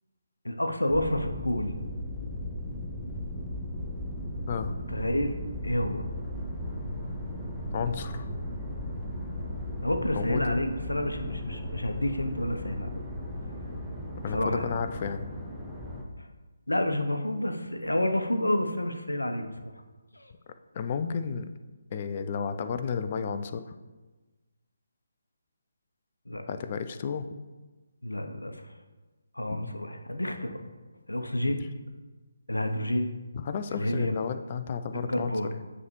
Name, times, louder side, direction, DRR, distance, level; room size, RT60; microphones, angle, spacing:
voice 1, 0.4-1.8 4.9-5.3 5.6-6.1 9.8-13.0 14.3-14.6 16.2-16.3 16.7-19.7 20.1-20.3 26.3-26.4 28.0-28.7 29.3-30.6 31.1-31.6 32.5-33.1 33.7-34.2 35.1-35.5, left 1 dB, 75° left, 5 dB, 0.7 m, -29 dB
sound 1, 0.9-16.0, left 1 dB, ahead, 0.7 m, -36 dB
voice 2, 7.7-8.3 10.1-10.6 14.2-15.3 20.7-21.5 21.9-23.7 26.5-27.3 29.5-29.7 31.4-31.7 33.3-35.6, left 6 dB, 30° left, 9 dB, 0.3 m, -32 dB
9.3 x 3.2 x 3.1 m, 1.2 s
figure-of-eight pair, 145°, 0 cm